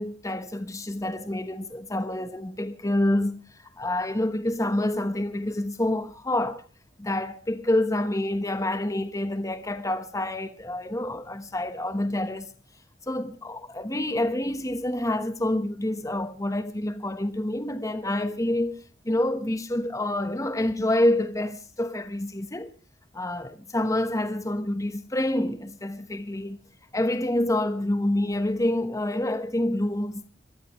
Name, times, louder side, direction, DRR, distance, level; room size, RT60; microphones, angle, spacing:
voice 1, 0.0-3.4 3.8-6.6 7.0-12.5 13.1-22.7 23.1-26.6 26.9-30.3, left 1 dB, 20° left, 1.1 m, -27 dB
26.5 x 13.0 x 3.1 m
head